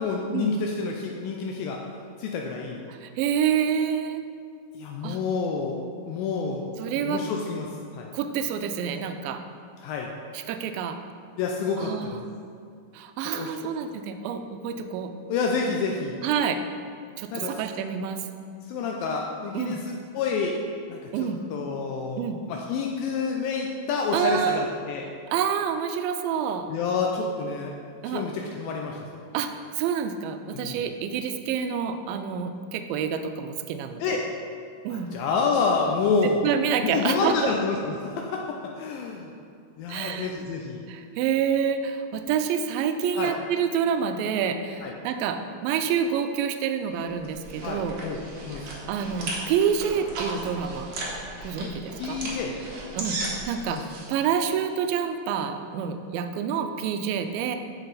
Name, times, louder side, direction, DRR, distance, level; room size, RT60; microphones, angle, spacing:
voice 1, 0.0-1.8 2.2-2.8 4.7-5.8 6.1-6.6 6.9-8.1 9.8-10.1 11.4-12.2 13.3-13.6 15.3-16.2 17.3-17.6 18.7-20.6 20.9-25.1 26.7-27.7 28.1-29.0 30.5-30.8 34.0-34.2 34.9-36.4 36.8-39.3 39.8-40.8 43.1-43.3 44.8-44.9 47.6-48.2 48.5-48.7 51.6-51.7 52.0-52.6 53.7-53.8, left 4 dB, 80° left, 0 dB, 2.3 m, -28 dB
voice 2, 2.9-4.2 5.0-5.2 6.8-7.2 8.1-9.4 10.3-11.0 11.8-12.2 12.9-15.1 16.2-16.6 17.2-18.3 19.5-19.8 21.1-21.4 22.2-22.4 24.1-24.8 25.3-26.7 28.0-28.2 29.3-34.2 34.8-35.1 36.4-37.5 39.9-40.3 40.9-48.0 48.6-50.9 51.4-52.2 53.0-53.2 53.5-53.8 54.1-57.6, right 7 dB, 85° right, 7 dB, 2.3 m, -27 dB
sound 1, 47.0-54.1, right 2 dB, 60° right, 1.6 m, -36 dB
8.7 x 6.2 x 4.0 m, 2.3 s
omnidirectional pair, 4.2 m